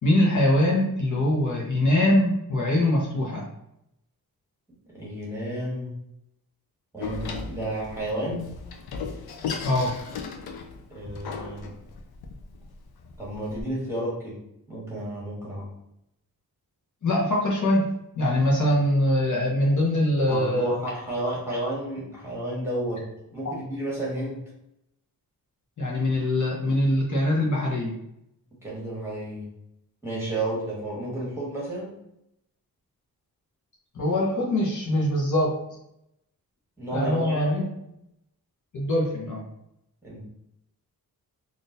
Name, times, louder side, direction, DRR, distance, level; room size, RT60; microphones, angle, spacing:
voice 1, 0.0-3.4 9.6-9.9 17.0-17.9 18.2-20.8 25.8-27.9 33.9-35.5 36.9-37.6 38.7-39.4, left 1 dB, 55° left, -3 dB, 0.9 m, -23 dB
voice 2, 4.9-5.9 6.9-8.5 10.9-11.7 13.2-15.7 20.3-24.4 28.6-29.5 30.0-32.0 36.8-37.8 40.0-40.2, right 1 dB, 5° right, -6 dB, 1.5 m, -32 dB
Door, 7.0-13.6, left 5 dB, 85° left, 0.5 m, -36 dB
3.6 x 2.6 x 2.6 m, 0.79 s
wide cardioid pair, 100°, 36 cm